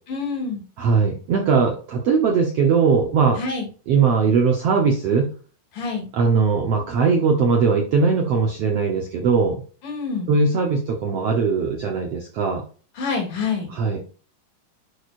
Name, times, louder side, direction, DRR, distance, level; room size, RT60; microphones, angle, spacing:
voice 1, 0.1-0.6 3.4-3.7 5.7-6.1 9.8-10.3 12.9-13.7, left 4 dB, 65° left, 0 dB, 4.3 m, -27 dB
voice 2, 0.8-3.4 3.9-5.3 6.1-9.6 10.3-12.6 13.8-14.0, right 5 dB, 65° right, 1 dB, 1.6 m, -20 dB
11.0 x 4.9 x 2.5 m, 0.38 s
omnidirectional pair, 4.0 m